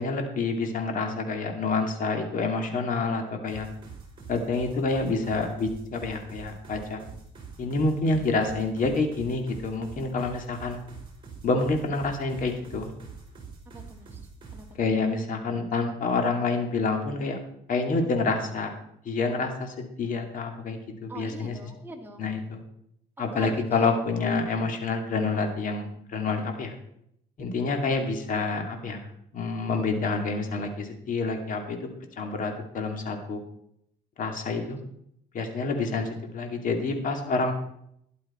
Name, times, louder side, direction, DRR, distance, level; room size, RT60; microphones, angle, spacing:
voice 1, 0.0-3.7 4.3-7.0 7.6-10.8 11.4-12.9 14.8-17.4 17.7-18.7 19.0-21.6 22.2-22.6 23.2-26.8 27.4-31.9 32.2-33.4 34.2-34.8 35.3-37.5, left 3 dB, 50° left, 4 dB, 2.4 m, -28 dB
sound 1, 3.5-14.7, right 5 dB, 30° right, 4.6 m, -45 dB
voice 2, 13.7-14.7 21.1-22.3 23.3-24.0 34.6-34.9, right 2 dB, 10° right, 1 dB, 2.3 m, -44 dB
12.5 x 11.0 x 4.3 m, 0.72 s
cardioid pair, 110°, 17 cm